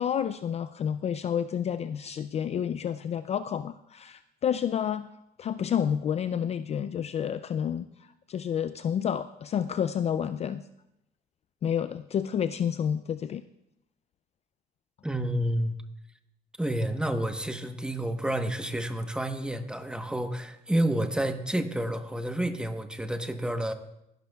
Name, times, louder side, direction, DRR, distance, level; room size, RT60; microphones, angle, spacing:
voice 1, 0.0-5.1 5.4-7.9 8.3-10.6 11.6-13.4, left 8 dB, 40° left, 12 dB, 0.4 m, -29 dB
voice 2, 15.0-15.8 16.6-23.7, right 1 dB, 5° right, 7 dB, 1.1 m, -29 dB
22.0 x 12.0 x 2.3 m, 0.84 s
cardioid pair, 110°, 17 cm